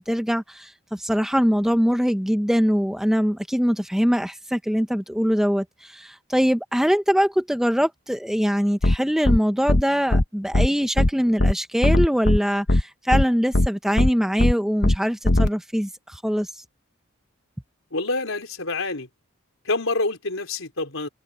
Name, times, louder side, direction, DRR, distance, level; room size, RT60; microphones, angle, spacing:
voice 1, 0.0-16.6, equal, ahead, 0.7 m, -23 dB
sound 1, 8.8-9.0 9.2-9.4 9.7-9.8 10.1-10.2 10.5-10.7 11.0-11.1 11.4-11.5 11.8-12.4 12.7-12.8 13.1-13.2 13.5-13.7 14.0-14.1 14.4-14.5 14.8-15.0 15.2-15.5, left 1 dB, 55° left, 1.1 m, -18 dB
voice 2, 17.9-19.1 19.7-21.1, left 3 dB, 80° left, 4.0 m, -27 dB
head